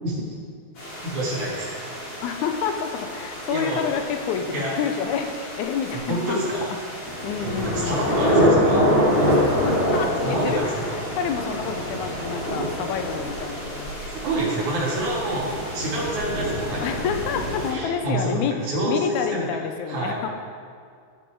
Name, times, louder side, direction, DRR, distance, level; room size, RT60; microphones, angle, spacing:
sound 1, 0.8-17.7, equal, 50° left, 3.7 m, -26 dB
voice 1, 1.0-1.7 3.5-3.8 4.5-4.7 5.9-6.6 7.4-8.9 9.1-9.4 10.2-10.6 14.1-15.5 15.7-16.9 17.7-19.4 19.9-20.2, right 1 dB, 80° right, -5 dB, 3.3 m, -27 dB
voice 2, 2.2-6.4 6.7-6.8 7.1-8.1 9.3-9.5 9.9-14.0 16.8-18.5 18.9-20.3, left 7 dB, 85° left, 6 dB, 2.0 m, -28 dB
15.5 x 5.5 x 4.6 m, 2.2 s
omnidirectional pair, 3.3 m